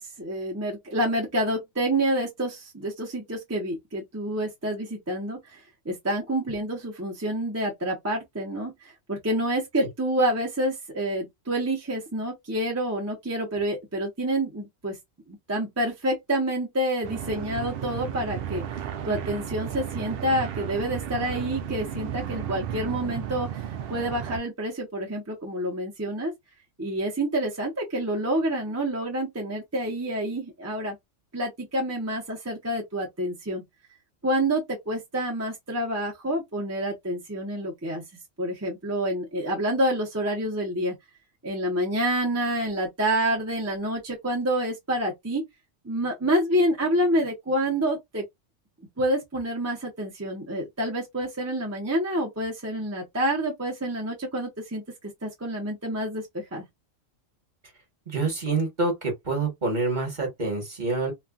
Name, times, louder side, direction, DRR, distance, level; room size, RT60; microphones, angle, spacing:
voice 1, 0.0-5.6 5.8-15.0 15.3-18.6 19.0-26.3 26.8-31.0 31.3-33.6 34.2-38.0 38.4-40.9 41.4-45.4 45.8-48.2 49.0-54.8 55.2-56.6, right 1 dB, 15° right, 0.7 m, -28 dB
sound 1, 17.0-24.4, right 9 dB, 65° right, 0.6 m, -34 dB
voice 2, 58.1-61.1, right 3 dB, 40° right, 1.3 m, -27 dB
3.1 x 2.4 x 2.3 m
omnidirectional pair, 1.3 m